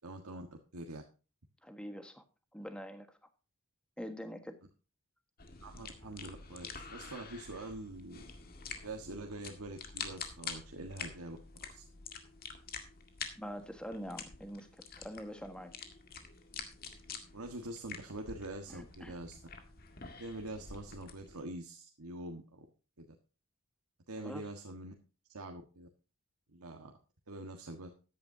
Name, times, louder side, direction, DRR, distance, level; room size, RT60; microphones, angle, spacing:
voice 1, 0.0-1.0 5.6-8.2 8.8-11.8 17.3-19.4 20.2-22.6 23.0-23.1 24.1-24.9 25.3-25.9 26.5-27.0 27.3-27.9, right 2 dB, 90° right, 2 dB, 1.6 m, -45 dB
voice 2, 1.6-2.2 2.5-3.2 4.0-4.6 13.4-15.7 18.7-19.2 24.2-24.4, equal, 5° left, 7 dB, 1.4 m, -44 dB
sound 1, 5.4-21.4, left 6 dB, 40° left, 1.9 m, -47 dB
14.5 x 10.5 x 2.8 m, 0.35 s
head